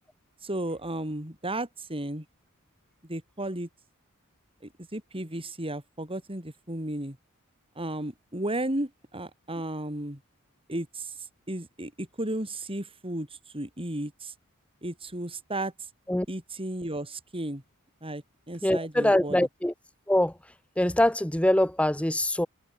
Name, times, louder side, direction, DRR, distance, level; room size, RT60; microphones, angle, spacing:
voice 1, 0.4-2.2 3.0-3.7 4.9-7.2 7.8-10.2 10.7-11.1 11.5-13.3 13.5-14.3 14.8-15.7 16.3-17.6 18.0-19.5, right 1 dB, 25° right, 6.2 m, -34 dB
voice 2, 18.6-19.7 20.1-20.3 20.8-22.5, left 1 dB, 5° left, 1.1 m, -23 dB
head